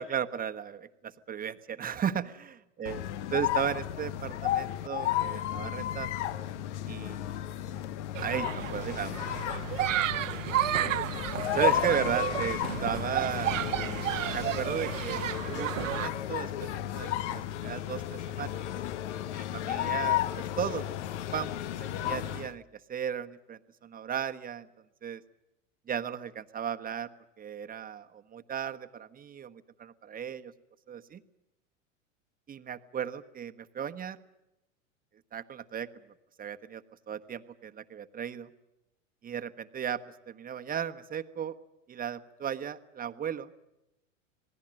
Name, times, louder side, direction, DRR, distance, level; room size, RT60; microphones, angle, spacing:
voice 1, 0.0-3.0 3.3-6.1 6.9-7.4 8.2-9.2 9.8-9.9 10.7-11.0 11.5-13.8 14.3-18.6 19.3-20.8 21.3-22.6 22.9-24.7 25.0-25.2 25.9-27.1 27.4-30.5 30.9-31.2 32.5-34.2 35.3-35.9 36.4-38.5 39.2-40.0 40.3-41.5 41.9-43.5, right 8 dB, 20° right, 9 dB, 1.3 m, -35 dB
sound 1, 2.8-22.5, left 12 dB, 60° left, 1.2 m, -33 dB
sound 2, 8.1-16.1, right 12 dB, 80° right, 1.4 m, -32 dB
27.5 x 19.5 x 7.7 m, 0.93 s
hypercardioid pair, 100°, 38 cm